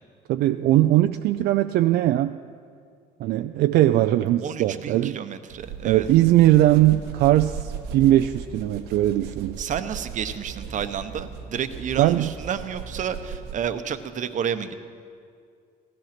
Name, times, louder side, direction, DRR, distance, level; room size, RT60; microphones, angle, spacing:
voice 1, 0.3-2.3 3.2-5.2 5.8-9.6 12.0-12.3, right 14 dB, 70° right, 9 dB, 0.4 m, -20 dB
voice 2, 4.4-6.1 9.6-14.7, right 8 dB, 50° right, 10 dB, 0.8 m, -30 dB
sound 1, 5.5-13.8, right 6 dB, 90° right, 1.1 m, -37 dB
16.0 x 13.5 x 5.9 m, 2.2 s
cardioid pair, 110°, 17 cm